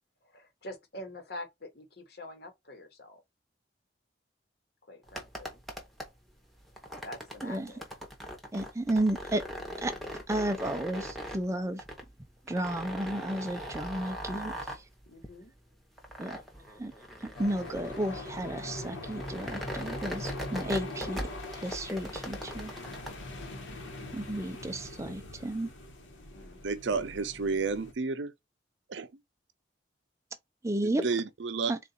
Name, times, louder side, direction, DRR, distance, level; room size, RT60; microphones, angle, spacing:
voice 1, 0.2-3.2 4.9-5.6 7.0-7.8 15.1-15.5 22.7-23.0 26.3-26.6, left 1 dB, 55° left, 1.1 m, -46 dB
sound 1, 5.0-23.1, equal, ahead, 0.8 m, -41 dB
voice 2, 7.4-7.7 8.5-9.4 9.8-9.9 10.3-11.8 12.5-14.8 16.2-16.4 16.8-16.9 17.2-22.8 24.1-25.7 30.6-31.0 31.7-31.8, right 1 dB, 15° right, 0.4 m, -33 dB
sound 2, 17.4-27.9, left 2 dB, 85° left, 1.2 m, -42 dB
voice 3, 26.6-28.3 28.9-29.1 30.8-31.7, right 4 dB, 75° right, 0.5 m, -31 dB
3.9 x 2.4 x 4.1 m
head